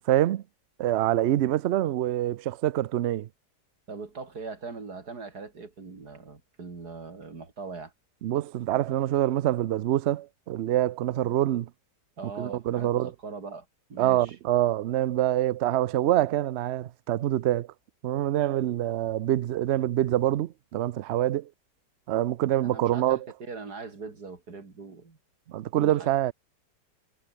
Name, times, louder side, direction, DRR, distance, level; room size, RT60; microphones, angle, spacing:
voice 1, 0.1-0.4 0.8-3.3 8.2-11.7 12.4-13.1 14.0-17.7 18.0-21.5 22.1-23.3 25.5-26.3, right 13 dB, 90° right, 0.5 m, -25 dB
voice 2, 3.9-7.9 12.2-14.4 22.6-25.2 25.7-26.1, right 4 dB, 60° right, 3.7 m, -41 dB
omnidirectional pair, 1.9 m